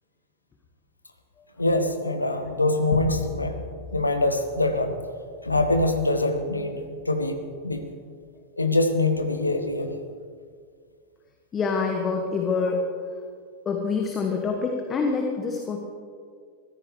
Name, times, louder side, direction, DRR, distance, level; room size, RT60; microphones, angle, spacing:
voice 1, 1.6-3.6 3.9-5.0 5.4-7.9 8.6-10.0, left 2 dB, 80° left, 6 dB, 1.4 m, -24 dB
sound 1, 2.9-5.7, left 6 dB, 40° left, 2.1 m, -37 dB
voice 2, 11.5-12.8 13.6-15.8, left 4 dB, 25° left, 2 dB, 1.7 m, -26 dB
23.0 x 15.5 x 3.3 m, 2.1 s
figure-of-eight pair, 90°, 0 cm